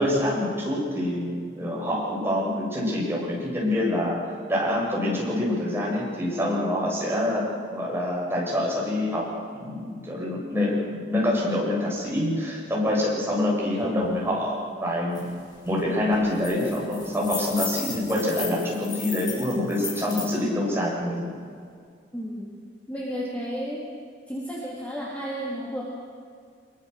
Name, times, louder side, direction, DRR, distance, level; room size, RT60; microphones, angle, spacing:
voice 1, 0.0-4.2 4.5-7.4 7.7-9.3 9.5-15.3 15.7-21.3, left 1 dB, 15° right, -4 dB, 7.6 m, -26 dB
sound 1, 15.1-15.2 15.6-15.8 16.1-20.3, left 4 dB, 25° left, 6.6 m, -35 dB
voice 2, 22.1-22.6 22.9-23.9 24.3-25.8, equal, 10° left, -6 dB, 3.7 m, -32 dB
24.5 x 23.5 x 6.8 m, 2.2 s
head